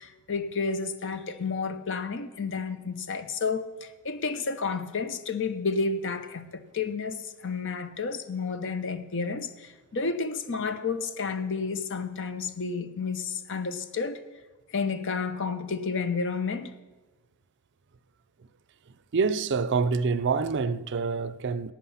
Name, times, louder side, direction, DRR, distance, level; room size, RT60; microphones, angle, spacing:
voice 1, 0.0-14.2 14.7-16.7, left 4 dB, 55° left, 0.8 m, -31 dB
voice 2, 19.1-21.7, right 5 dB, 50° right, 0.5 m, -26 dB
11.5 x 8.8 x 5.7 m
head